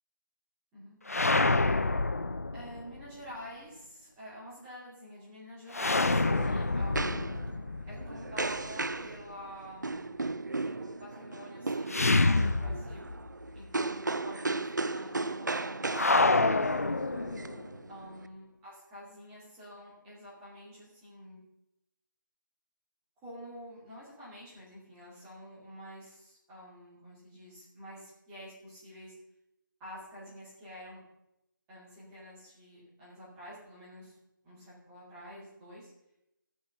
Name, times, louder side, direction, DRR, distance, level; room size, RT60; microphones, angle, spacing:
sound 1, 1.1-3.0 5.7-8.7 11.9-13.3 13.6-13.7 15.9-17.7, left 3 dB, 45° left, 0.6 m, -27 dB
voice 1, 2.5-7.4 7.9-13.1 13.5-17.2 17.9-21.4 23.2-29.1 29.8-31.0 31.7-34.2 34.4-35.9, equal, 5° right, -9 dB, 2.4 m, -48 dB
sound 2, 5.8-18.3, right 3 dB, 60° right, 0.7 m, -36 dB
13.0 x 9.3 x 5.6 m, 0.87 s
figure-of-eight pair, 170°, 11 cm